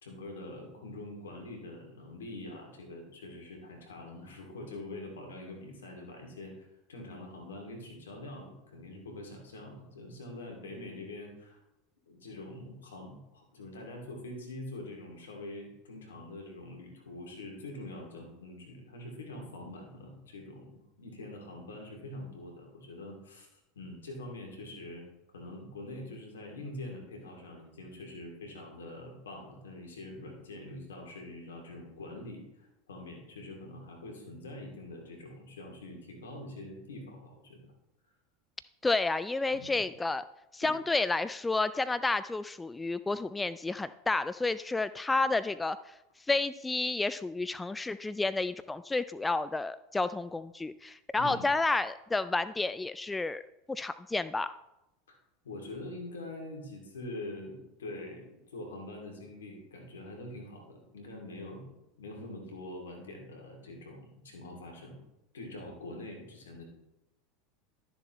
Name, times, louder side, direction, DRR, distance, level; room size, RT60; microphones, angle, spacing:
voice 1, 0.0-11.6 12.1-25.1 25.3-37.7 39.5-39.8 40.6-40.7 51.2-51.4 55.1-55.2 55.4-61.7 62.0-65.0 65.3-66.6, left 1 dB, 85° left, 1 dB, 2.4 m, -44 dB
voice 2, 38.8-40.2 40.5-45.8 46.3-53.4 53.7-54.5, left 3 dB, 15° left, 14 dB, 0.3 m, -30 dB
12.5 x 6.9 x 3.0 m, 0.90 s
hypercardioid pair, 85°, 0 cm